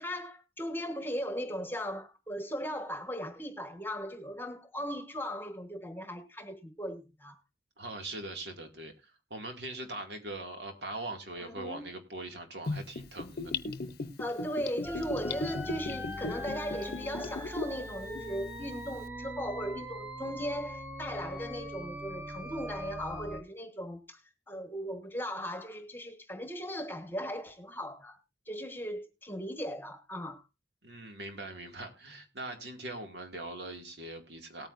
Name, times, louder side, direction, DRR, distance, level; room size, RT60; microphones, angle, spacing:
voice 1, 0.0-7.4 11.4-11.8 14.2-24.2 24.5-28.2 28.5-30.4, equal, 10° left, 1.3 m, -38 dB
voice 2, 7.8-13.5 30.8-34.7, right 2 dB, 70° right, 2.2 m, -41 dB
Gurgling / Bathtub (filling or washing), 12.7-17.8 18.1-18.2, left 3 dB, 55° left, 0.8 m, -36 dB
sound 1, 14.8-23.4, equal, 5° right, 1.4 m, -41 dB
18.5 x 9.0 x 2.6 m
head